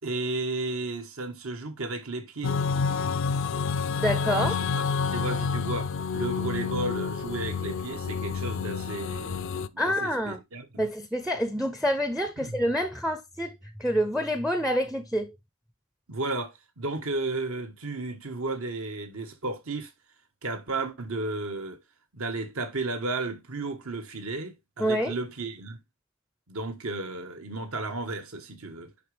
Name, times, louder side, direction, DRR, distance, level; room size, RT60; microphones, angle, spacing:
voice 1, 0.0-2.6 4.4-10.9 12.4-12.6 16.1-19.9 20.4-21.8 22.1-25.8 26.5-28.9, right 2 dB, 70° right, 1.4 m, -33 dB
sound 1, 2.4-9.7, left 5 dB, 60° left, 0.4 m, -29 dB
voice 2, 3.9-4.5 9.8-10.4 10.8-15.3 24.8-25.1, equal, ahead, 0.5 m, -27 dB
10.5 x 3.7 x 3.3 m
head